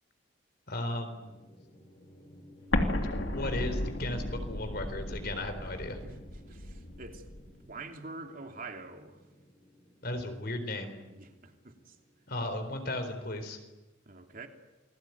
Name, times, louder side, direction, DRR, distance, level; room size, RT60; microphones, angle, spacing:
voice 1, 0.7-1.4 3.3-6.0 10.0-11.0 12.3-13.6, left 1 dB, 50° left, 7 dB, 4.1 m, -35 dB
sound 1, 0.9-13.0, equal, 30° left, 5.5 m, -57 dB
Explosion, 2.7-7.5, left 1 dB, 70° left, 3.0 m, -34 dB
voice 2, 6.5-9.2 11.1-12.0 14.1-14.5, right 3 dB, 45° right, 4 dB, 3.0 m, -46 dB
29.0 x 21.0 x 9.5 m, 1.1 s
head